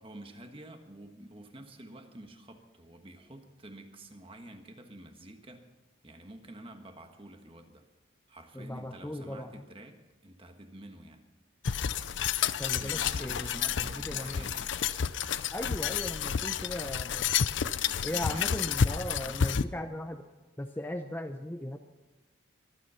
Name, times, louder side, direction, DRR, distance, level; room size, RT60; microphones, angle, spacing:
voice 1, 0.0-5.7 6.0-7.9 8.3-11.3 12.6-14.8 17.9-18.7, right 1 dB, 25° right, 5 dB, 1.4 m, -49 dB
voice 2, 8.5-9.6 12.6-14.5 15.5-17.3 18.0-20.2 20.6-21.8, left 1 dB, 10° left, 6 dB, 0.6 m, -38 dB
sound 1, 11.6-19.6, left 7 dB, 65° left, 0.5 m, -30 dB
23.5 x 9.5 x 5.7 m, 1.2 s
head